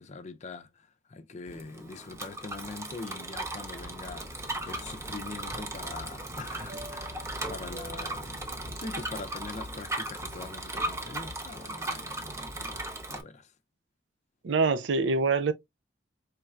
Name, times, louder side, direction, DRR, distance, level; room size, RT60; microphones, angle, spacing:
voice 1, 0.0-8.4 8.8-13.5, left 3 dB, 40° left, 0.5 m, -43 dB
Bicycle, 1.5-13.2, right 1 dB, 15° right, 0.6 m, -37 dB
Fixed-wing aircraft airplane, 3.8-8.8, equal, 55° right, 1.7 m, -46 dB
voice 2, 14.4-15.5, right 4 dB, 70° right, 0.5 m, -25 dB
4.5 x 3.2 x 2.4 m
head